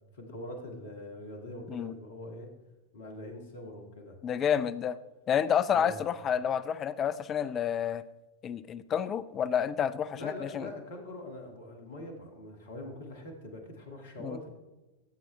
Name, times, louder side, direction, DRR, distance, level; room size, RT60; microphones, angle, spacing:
voice 1, 0.1-2.5 2.9-4.2 5.7-6.1 10.1-14.5, left 1 dB, 60° left, 4 dB, 1.9 m, -43 dB
voice 2, 4.2-5.0 5.3-8.0 8.4-10.7 14.2-14.4, left 8 dB, 25° left, 15 dB, 0.4 m, -29 dB
13.0 x 7.6 x 3.3 m, 1.1 s
figure-of-eight pair, 90°, 0 cm